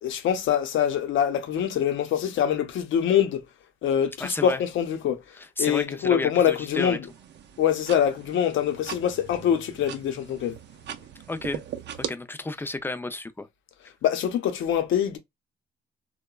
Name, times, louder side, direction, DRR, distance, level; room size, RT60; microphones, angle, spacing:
voice 1, 0.0-3.4 3.8-5.2 5.6-7.0 7.6-10.6 14.0-15.2, left 9 dB, 75° left, 0.7 m, -24 dB
voice 2, 4.2-4.6 5.4-7.0 11.3-11.6 12.0-13.5, left 2 dB, 10° left, 0.4 m, -32 dB
sound 1, 7.0-12.1, right 9 dB, 60° right, 0.5 m, -40 dB
2.9 x 2.2 x 2.2 m
cardioid pair, 90°, 20 cm